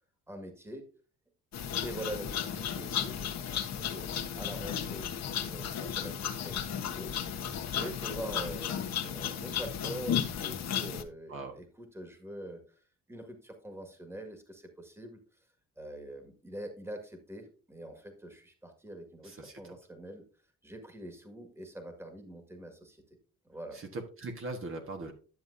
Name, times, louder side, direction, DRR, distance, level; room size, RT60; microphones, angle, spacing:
voice 1, 0.3-0.9 1.8-4.1 4.4-5.1 5.4-15.2 15.8-20.2 20.6-23.0 23.4-23.8, right 1 dB, 10° right, 5 dB, 1.9 m, -44 dB
sound 1, 1.5-11.0, left 9 dB, 60° left, 1.2 m, -34 dB
voice 2, 19.2-19.7 23.7-25.1, right 2 dB, 45° right, 3 dB, 1.4 m, -40 dB
10.5 x 7.0 x 2.7 m, 0.37 s
cardioid pair, 90°, 30 cm